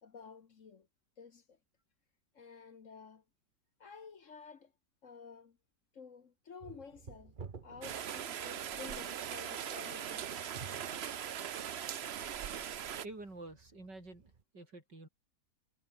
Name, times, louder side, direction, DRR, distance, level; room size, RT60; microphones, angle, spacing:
voice 1, 0.0-0.9 1.2-1.6 2.3-3.2 3.8-4.7 5.0-5.6 5.9-7.3 7.6-10.5, left 5 dB, 50° left, 1.5 m, -52 dB
sound 1, 6.6-14.4, right 5 dB, 30° right, 1.2 m, -54 dB
Rain, 7.8-13.1, right 9 dB, 50° right, 0.8 m, -40 dB
voice 2, 13.0-15.1, right 2 dB, 80° right, 7.6 m, -49 dB
omnidirectional pair, 1.9 m